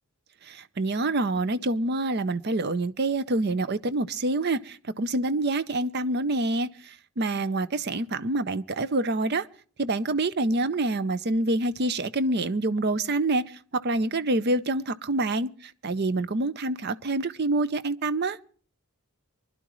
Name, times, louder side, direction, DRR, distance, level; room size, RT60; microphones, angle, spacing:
voice 1, 0.4-9.5 9.8-18.4, right 2 dB, 45° right, 0.6 m, -27 dB
24.5 x 11.5 x 3.1 m
head